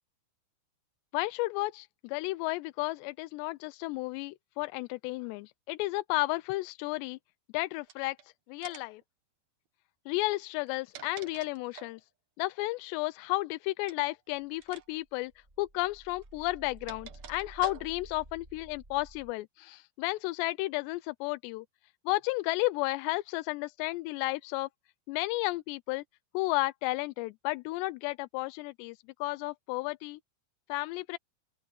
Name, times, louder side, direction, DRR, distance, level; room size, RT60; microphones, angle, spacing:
voice 1, 1.1-7.2 7.5-8.2 8.5-9.0 10.1-12.0 12.4-15.3 15.6-21.7 22.1-24.7 25.1-26.0 26.3-30.2 30.7-31.2, left 21 dB, 90° left, 2.8 m, -33 dB
sound 1, 7.8-8.2 8.6-9.0 10.5-12.0 13.8-14.1 14.6-14.9 15.1-15.3 16.2-18.2, right 10 dB, 65° right, 1.7 m, -48 dB
sound 2, 14.3-15.0 15.3-19.3, right 1 dB, 15° right, 3.0 m, -52 dB
open air
omnidirectional pair, 4.9 m